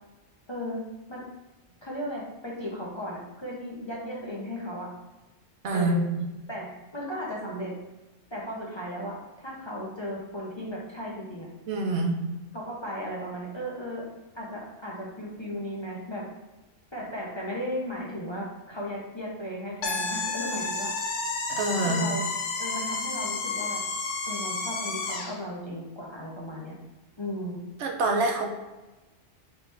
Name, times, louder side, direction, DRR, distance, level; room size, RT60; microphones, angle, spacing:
voice 1, 0.5-0.8 1.1-1.2 1.8-4.9 5.7-6.1 6.5-7.7 8.3-11.5 12.5-14.0 14.3-16.3 16.9-20.9 21.7-22.3 22.6-23.8 24.2-26.7 27.2-27.6, equal, 25° left, -4 dB, 0.7 m, -35 dB
voice 2, 5.6-6.3 11.7-12.2 21.5-22.1 27.8-28.5, right 2 dB, 75° right, 2 dB, 0.9 m, -26 dB
sound 1, 19.8-25.4, left 3 dB, 80° left, 1.1 m, -31 dB
4.7 x 3.2 x 3.3 m, 1.1 s
omnidirectional pair, 1.2 m